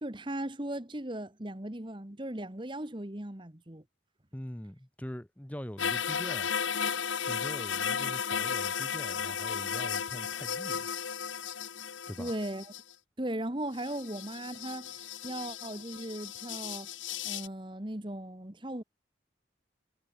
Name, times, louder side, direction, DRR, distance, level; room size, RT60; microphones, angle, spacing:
voice 1, 0.0-3.8 12.2-12.7 13.2-16.9 17.2-18.8, right 1 dB, 25° right, 1.5 m, -37 dB
voice 2, 4.3-6.5 7.2-10.9 12.1-12.3, equal, 10° left, 0.8 m, -43 dB
sound 1, 5.8-12.9 13.8-17.5, left 7 dB, 85° left, 1.3 m, -34 dB
head